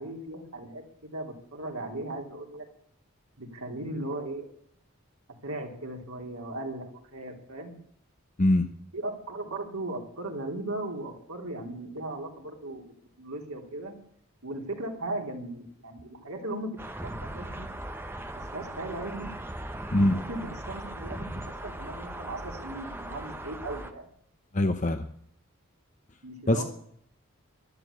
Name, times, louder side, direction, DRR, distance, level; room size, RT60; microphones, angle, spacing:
voice 1, 0.0-2.6 3.4-4.5 5.4-7.8 8.9-12.9 13.2-13.9 14.4-17.7 18.4-19.3 20.1-24.1 26.2-26.6, right 2 dB, 90° right, 2 dB, 3.4 m, -37 dB
voice 2, 8.4-8.7 19.9-20.2 24.5-25.0 26.5-26.6, left 1 dB, 35° left, 8 dB, 0.9 m, -22 dB
sound 1, 16.8-23.9, right 1 dB, 10° right, 1.0 m, -39 dB
12.0 x 12.0 x 8.4 m, 0.65 s
head